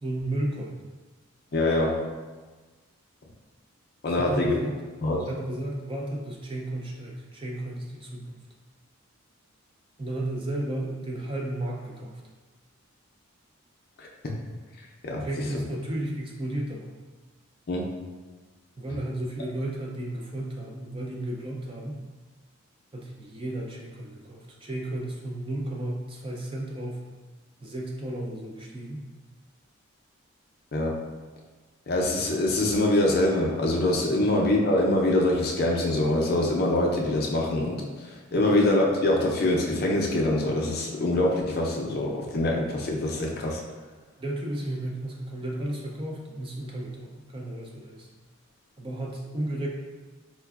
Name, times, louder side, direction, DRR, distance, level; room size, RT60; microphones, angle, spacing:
voice 1, 0.0-0.8 4.1-4.8 5.3-8.4 10.0-12.2 15.2-17.0 18.8-22.0 22.9-27.0 27.6-29.0 34.1-34.3 38.3-38.6 44.2-48.1 48.8-49.7, right 1 dB, 25° right, -2 dB, 0.4 m, -33 dB
voice 2, 1.5-2.1 4.0-4.6 5.0-5.3 14.0-14.1 15.0-15.2 17.7-17.9 30.7-30.9 31.9-43.6, left 1 dB, 45° left, -1 dB, 0.5 m, -24 dB
4.5 x 2.4 x 2.3 m, 1.3 s
head